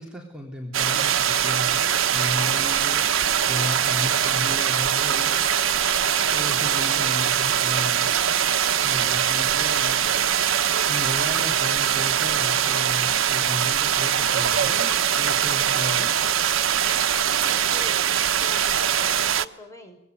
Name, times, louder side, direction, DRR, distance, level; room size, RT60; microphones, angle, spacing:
voice 1, 0.0-1.9 2.1-3.1 3.4-5.4 6.3-8.1 8.8-10.3 10.9-16.2, left 1 dB, 5° right, -1 dB, 3.7 m, -34 dB
sound 1, 0.7-19.4, right 9 dB, 85° right, 1.0 m, -22 dB
sound 2, 2.5-8.0, left 4 dB, 60° left, 4.6 m, -46 dB
voice 2, 17.3-20.0, left 1 dB, 15° left, 4 dB, 5.4 m, -44 dB
24.5 x 20.5 x 9.6 m, 0.76 s
head